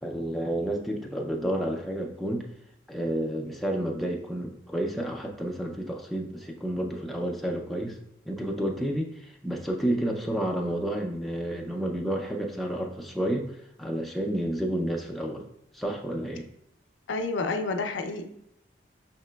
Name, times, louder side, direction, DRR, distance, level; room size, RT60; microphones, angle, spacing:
voice 1, 0.0-2.5 2.9-8.0 8.2-15.4 15.7-16.4, right 1 dB, ahead, 0 dB, 0.3 m, -30 dB
voice 2, 17.1-18.2, left 3 dB, 85° left, 7 dB, 0.4 m, -29 dB
5.7 x 2.8 x 2.2 m, 0.76 s
head